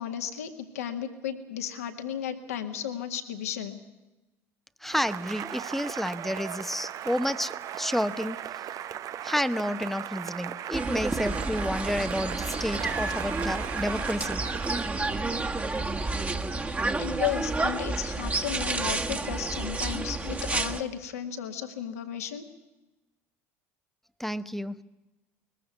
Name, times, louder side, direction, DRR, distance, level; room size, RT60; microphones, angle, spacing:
voice 1, 0.0-3.8 17.0-22.5, left 10 dB, 80° left, 6 dB, 1.9 m, -34 dB
voice 2, 4.8-8.4 9.2-14.5 24.2-24.8, equal, 5° left, 14 dB, 0.8 m, -30 dB
Cheering / Applause, 4.9-15.0, right 10 dB, 45° right, 0.7 m, -38 dB
sound 1, 10.7-20.8, right 3 dB, 20° right, 1.5 m, -30 dB
sound 2, 12.8-16.5, right 6 dB, 80° right, 5.0 m, -42 dB
20.5 x 15.0 x 9.4 m, 1.1 s
hypercardioid pair, 70°, 8 cm